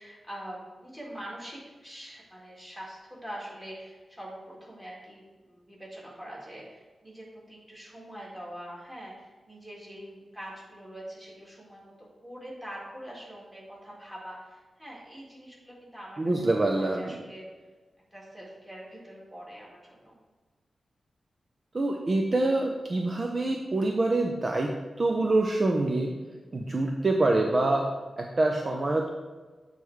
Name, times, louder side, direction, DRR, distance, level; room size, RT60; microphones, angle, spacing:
voice 1, 0.0-11.9 12.2-17.5 18.1-20.2 26.2-26.4, equal, 10° right, -5 dB, 2.1 m, -44 dB
voice 2, 16.2-17.2 21.7-26.1 26.5-27.9 28.2-29.1, right 2 dB, 35° right, 1 dB, 0.5 m, -26 dB
8.1 x 3.4 x 4.6 m, 1.3 s
wide cardioid pair, 115°, 0 cm